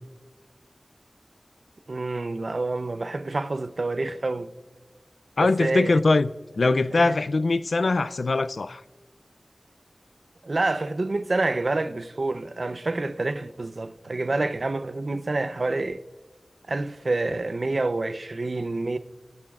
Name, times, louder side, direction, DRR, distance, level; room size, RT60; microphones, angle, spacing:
voice 1, 1.9-4.5 5.4-6.0 6.9-7.2 10.4-16.0 16.7-19.0, right 2 dB, 55° right, 0.6 m, -27 dB
voice 2, 5.4-6.3 6.6-8.8, left 3 dB, 75° left, 0.4 m, -22 dB
20.5 x 8.9 x 2.4 m
wide cardioid pair, 70°, 0 cm